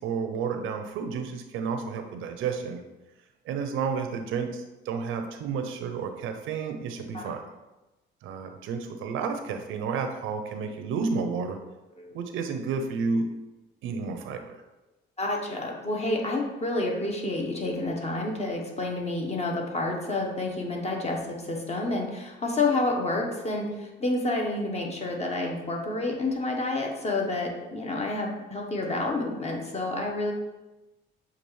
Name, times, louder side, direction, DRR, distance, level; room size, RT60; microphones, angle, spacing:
voice 1, 0.0-2.8 3.5-7.4 8.2-11.6 12.1-13.3 13.8-14.5, right 5 dB, 90° right, 6 dB, 0.5 m, -31 dB
voice 2, 15.2-30.3, left 2 dB, 35° left, 0 dB, 1.0 m, -29 dB
6.8 x 2.4 x 3.1 m, 1.0 s
cardioid pair, 90°, 20 cm